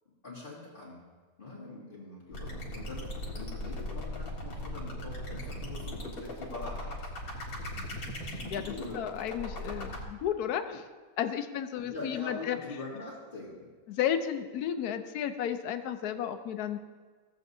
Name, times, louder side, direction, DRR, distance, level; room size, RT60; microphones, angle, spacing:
voice 1, 0.2-1.0 1.4-7.0 8.7-9.0 11.8-13.7, left 3 dB, 35° left, -7 dB, 2.2 m, -43 dB
sound 1, 2.3-10.0, left 1 dB, 70° left, 2.1 m, -38 dB
voice 2, 7.8-10.9 11.2-12.6 13.9-16.8, left 9 dB, 90° left, 9 dB, 1.2 m, -33 dB
15.5 x 7.8 x 2.7 m, 1.5 s
omnidirectional pair, 1.6 m